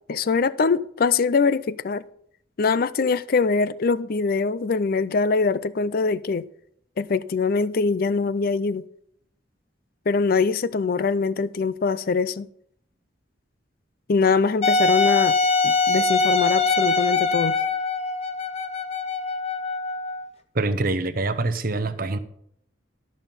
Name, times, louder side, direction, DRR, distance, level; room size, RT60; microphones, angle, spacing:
voice 1, 0.1-2.0 2.6-6.4 7.0-8.8 10.1-12.5 14.1-15.4 15.6-17.6, left 4 dB, 50° left, 0.4 m, -23 dB
Wind instrument woodwind instrument, 14.6-20.3, left 3 dB, 35° left, 0.9 m, -23 dB
voice 2, 20.5-22.2, right 2 dB, 50° right, 0.8 m, -25 dB
13.0 x 6.2 x 5.4 m
head